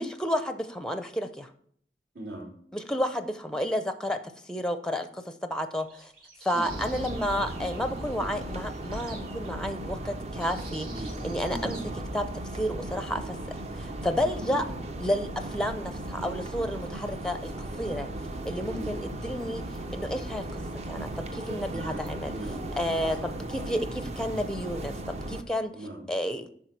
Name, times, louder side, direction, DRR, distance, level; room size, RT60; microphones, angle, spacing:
voice 1, 0.0-1.5 2.7-4.2 4.5-6.1 6.4-10.9 11.2-11.8 12.1-12.3 12.5-13.4 13.7-14.6 15.0-18.1 18.5-19.6 19.9-20.6 20.9-22.3 22.8-24.9 25.3-25.7 26.1-26.5, equal, 5° left, 9 dB, 0.5 m, -31 dB
voice 2, 2.1-2.5 6.5-6.7 10.9-11.2 11.5-11.7 14.4-14.7 18.7-18.9 21.7-22.0 22.3-22.7 23.2-23.8 25.7-26.1, right 1 dB, 75° right, -3 dB, 3.4 m, -39 dB
sound 1, 5.8-9.5 10.4-11.9, right 4 dB, 55° right, 2.7 m, -49 dB
sound 2, 6.7-25.4, right 1 dB, 35° right, 0.7 m, -36 dB
9.1 x 6.0 x 4.6 m, 0.62 s
head